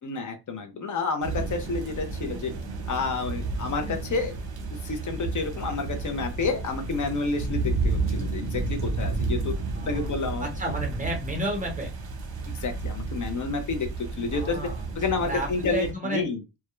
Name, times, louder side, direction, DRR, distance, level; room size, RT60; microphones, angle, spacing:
voice 1, 0.0-2.5 2.9-4.3 4.8-9.5 9.9-10.5 12.5-13.9 14.2-14.6 15.0-16.4, left 4 dB, 45° left, 5 dB, 0.5 m, -29 dB
sound 1, 1.2-15.9, right 3 dB, 60° right, 0.7 m, -32 dB
voice 2, 9.7-10.1 10.4-11.9 14.3-16.3, right 1 dB, 20° right, 1 dB, 0.7 m, -32 dB
2.3 x 2.1 x 2.9 m, 0.26 s
wide cardioid pair, 160°, 43 cm